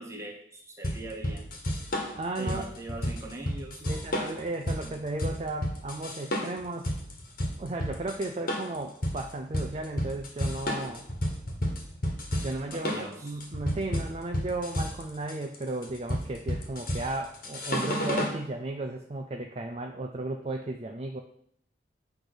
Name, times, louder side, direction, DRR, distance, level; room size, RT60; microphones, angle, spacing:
voice 1, 0.0-1.4 2.4-4.2 4.8-4.9 12.7-13.4, right 1 dB, 15° right, -1 dB, 1.2 m, -41 dB
sound 1, 0.8-18.4, equal, 50° left, 1.4 m, -31 dB
voice 2, 2.1-2.6 3.8-6.9 7.6-11.1 12.4-21.2, right 2 dB, 35° right, 4 dB, 0.4 m, -35 dB
8.6 x 3.3 x 6.0 m, 0.68 s
head